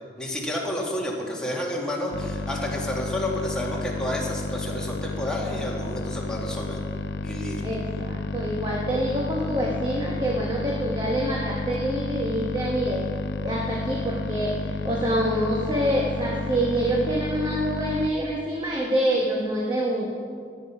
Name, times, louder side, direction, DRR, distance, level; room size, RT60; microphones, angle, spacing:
voice 1, 0.2-6.8 7.2-7.6, left 1 dB, 5° left, -3 dB, 1.9 m, -30 dB
sound 1, 2.1-18.1, left 2 dB, 75° left, 0.5 m, -31 dB
voice 2, 7.6-13.1 13.4-20.1, right 1 dB, 25° right, -2 dB, 1.1 m, -26 dB
14.0 x 8.5 x 5.9 m, 2.2 s
head